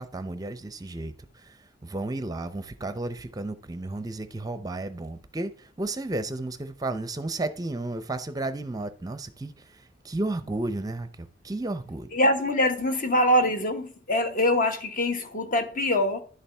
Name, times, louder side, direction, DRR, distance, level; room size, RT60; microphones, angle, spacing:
voice 1, 0.0-12.1, right 2 dB, 20° right, 0.6 m, -33 dB
voice 2, 12.1-16.2, left 1 dB, 45° left, 1.3 m, -24 dB
11.0 x 7.1 x 3.4 m
head